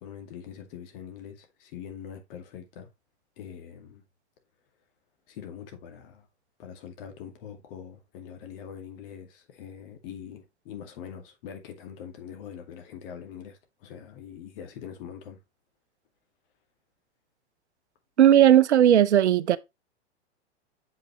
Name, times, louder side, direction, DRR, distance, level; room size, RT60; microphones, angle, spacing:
voice 1, 0.0-2.9 3.4-4.0 5.3-6.3 6.6-15.4, left 8 dB, 50° left, 2.3 m, -43 dB
voice 2, 18.2-19.6, right 11 dB, 75° right, 0.7 m, -17 dB
7.5 x 5.5 x 3.1 m
figure-of-eight pair, 100°, 34 cm